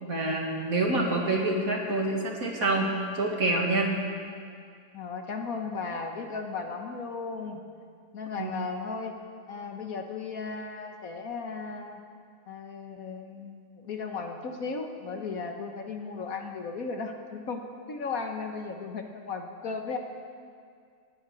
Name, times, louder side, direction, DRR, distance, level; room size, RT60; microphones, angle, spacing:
voice 1, 0.0-3.9 8.4-8.5, right 2 dB, 55° right, -1 dB, 2.5 m, -27 dB
voice 2, 4.3-4.6 4.9-7.6 8.1-9.1 9.5-12.0 12.5-20.0, left 4 dB, 60° left, 4 dB, 1.6 m, -36 dB
18.0 x 11.5 x 6.3 m, 2.2 s
omnidirectional pair, 1.8 m